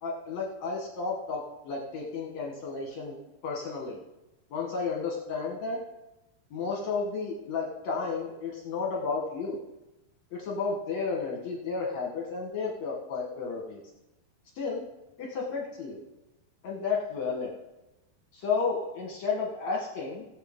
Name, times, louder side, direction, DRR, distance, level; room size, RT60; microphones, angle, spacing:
voice 1, 0.0-3.2 3.4-4.0 4.5-5.8 6.5-9.6 10.3-13.8 14.6-14.8 15.2-16.0 16.6-17.5 18.3-20.3, left 4 dB, 65° left, -1 dB, 1.8 m, -32 dB
17.5 x 7.3 x 3.6 m, 0.98 s
omnidirectional pair, 4.6 m